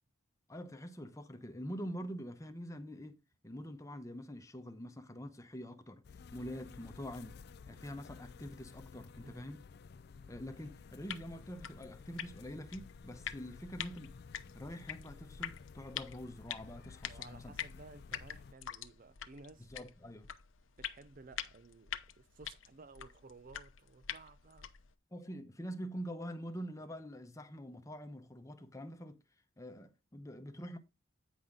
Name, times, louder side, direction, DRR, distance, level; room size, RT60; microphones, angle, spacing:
voice 1, 0.5-6.1 6.3-9.7 10.3-17.5 19.6-20.3 25.1-29.2 29.6-30.8, equal, 15° left, 0.9 m, -45 dB
sound 1, 6.0-18.5, left 5 dB, 50° left, 0.4 m, -54 dB
sound 2, 11.0-24.9, left 9 dB, 70° left, 0.7 m, -46 dB
voice 2, 17.0-19.7 20.8-24.7, right 3 dB, 40° right, 0.5 m, -56 dB
9.3 x 5.8 x 3.7 m
head